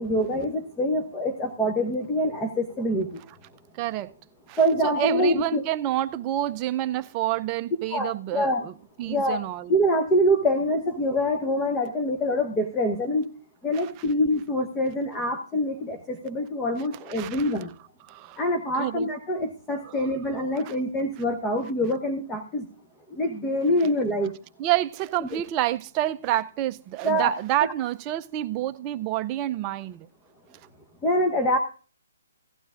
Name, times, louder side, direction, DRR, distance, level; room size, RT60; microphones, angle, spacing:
voice 1, 0.0-3.2 4.6-5.6 7.9-8.6 9.0-9.4 9.7-13.3 13.6-17.7 18.4-22.6 23.1-24.3 25.3-25.4 27.0-27.3 31.0-31.6, equal, 10° left, 1.0 m, -25 dB
voice 2, 3.7-4.1 4.5-8.7 9.0-9.7 13.7-13.9 17.1-17.4 18.1-18.4 18.8-19.1 19.8-20.1 20.6-20.8 24.6-30.1, right 14 dB, 25° right, 0.5 m, -28 dB
16.0 x 11.5 x 2.5 m
hypercardioid pair, 145°, 0 cm